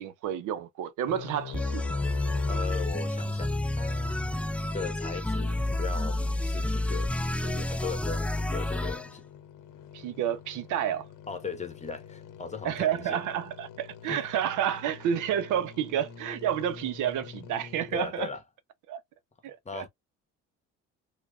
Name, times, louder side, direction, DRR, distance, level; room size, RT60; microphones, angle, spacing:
voice 1, 0.0-1.8 9.9-11.0 12.6-18.3 18.9-19.0 19.4-19.9, right 9 dB, 60° right, 0.7 m, -30 dB
sound 1, 1.1-18.0, left 8 dB, 60° left, 0.8 m, -46 dB
sound 2, 1.5-9.1, left 1 dB, 5° left, 0.4 m, -29 dB
voice 2, 2.5-4.5 4.7-7.1 7.4-9.3 11.3-13.2 14.0-14.3 17.9-18.4 19.6-19.9, left 5 dB, 20° left, 1.1 m, -38 dB
4.5 x 2.3 x 2.3 m
hypercardioid pair, 70°, 34 cm